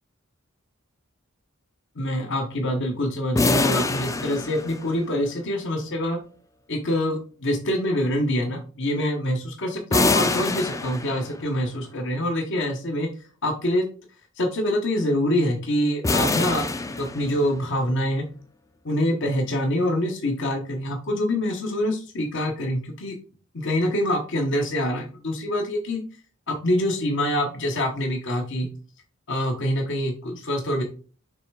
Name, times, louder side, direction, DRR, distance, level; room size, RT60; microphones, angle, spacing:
voice 1, 2.0-6.2 6.7-13.1 13.4-13.9 14.4-16.6 17.0-18.3 18.8-23.2 23.5-26.0 26.5-28.7 29.3-30.8, left 1 dB, 60° left, 3 dB, 1.0 m, -25 dB
sound 1, 3.4-5.2 9.9-11.6 16.0-17.7, left 3 dB, 15° left, 0.4 m, -25 dB
6.6 x 3.3 x 4.6 m, 0.40 s
head